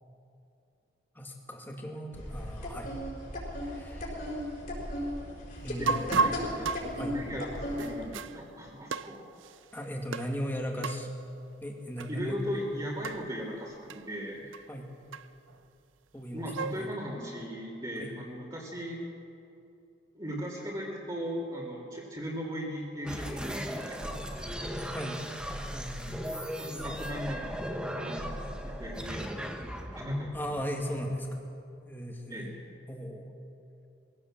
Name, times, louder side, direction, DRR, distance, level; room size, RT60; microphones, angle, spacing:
voice 1, 1.2-2.9 3.6-4.2 5.6-7.2 9.7-11.1 11.6-12.4 14.7-14.9 16.1-16.4 16.8-16.9 18.0-18.1 24.8-25.2 25.7-26.2 30.3-31.3 31.9-32.5 32.9-33.3, equal, 10° left, 1 dB, 2.1 m, -37 dB
sound 1, 2.1-8.1, left 1 dB, 45° left, 4.6 m, -36 dB
voice 2, 5.8-9.2 12.1-14.5 16.3-19.0 20.1-24.7 26.0-26.2 26.6-29.6 29.9-30.3 32.3-32.6, equal, 20° right, -7 dB, 2.8 m, -38 dB
sound 2, 5.9-8.4 8.9-9.6 10.1-10.4 10.8-11.1 12.0-12.2 12.4-12.5 13.0-13.3 13.9-14.0 14.5-14.6 15.1-15.6 16.2-16.9, right 4 dB, 85° right, 0.6 m, -33 dB
sound 3, 23.0-31.3, equal, 5° right, 1.4 m, -37 dB
22.0 x 16.5 x 7.4 m, 2.7 s
head